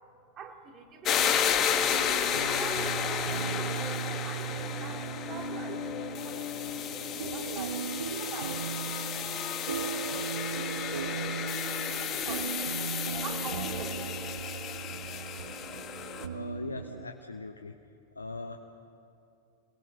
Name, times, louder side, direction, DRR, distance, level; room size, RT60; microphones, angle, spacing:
voice 1, 0.4-1.8 2.5-9.0 9.6-11.5 12.0-12.9 13.2-14.0, right 6 dB, 30° right, 4 dB, 2.5 m, -46 dB
sound 1, 1.0-16.3, left 8 dB, 30° left, 1.6 m, -32 dB
sound 2, 1.1-17.1, right 7 dB, 70° right, 0.5 m, -38 dB
voice 2, 16.3-17.7 18.1-18.6, left 3 dB, 80° left, 4 dB, 1.0 m, -40 dB
28.0 x 20.5 x 6.5 m, 2.6 s
figure-of-eight pair, 90°, 0 cm